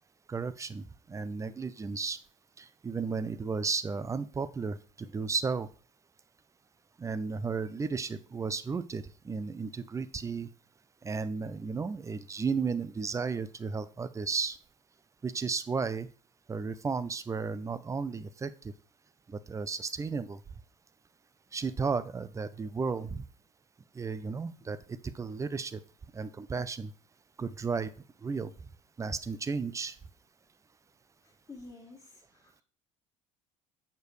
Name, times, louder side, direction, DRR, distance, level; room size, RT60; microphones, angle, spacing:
voice 1, 0.3-2.2 2.6-5.7 7.0-10.5 11.0-14.6 15.2-16.1 16.5-18.7 19.3-20.4 21.5-23.2 23.9-25.8 26.1-26.9 27.4-27.9 28.2-28.5 29.0-30.0, right 5 dB, 20° right, 14 dB, 0.6 m, -34 dB
voice 2, 31.2-32.6, left 3 dB, 20° left, -3 dB, 1.7 m, -50 dB
8.0 x 6.7 x 3.1 m, 0.37 s
figure-of-eight pair, 60°, 17 cm